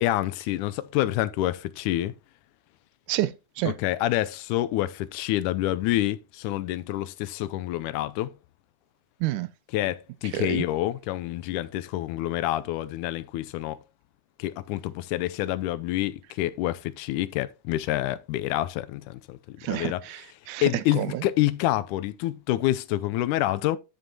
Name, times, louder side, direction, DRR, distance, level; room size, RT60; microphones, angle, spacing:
voice 1, 0.0-2.1 3.7-8.3 9.7-13.8 14.4-20.0 20.6-23.8, left 15 dB, 85° left, 2.1 m, -27 dB
voice 2, 3.1-3.8 9.2-9.5 10.3-10.6 19.6-21.2, right 14 dB, 80° right, 2.1 m, -29 dB
13.0 x 5.4 x 2.8 m
omnidirectional pair, 3.5 m